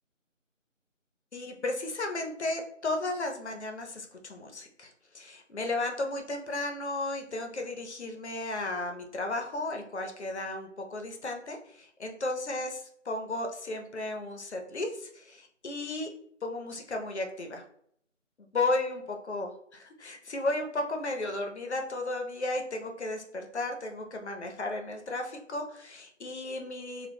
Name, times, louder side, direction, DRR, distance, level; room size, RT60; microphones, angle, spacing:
voice 1, 1.3-16.1 16.4-17.6 18.5-19.5 20.0-27.1, left 2 dB, 60° left, 4 dB, 0.6 m, -34 dB
2.2 x 2.1 x 3.2 m, 0.67 s
figure-of-eight pair, 175°, 38 cm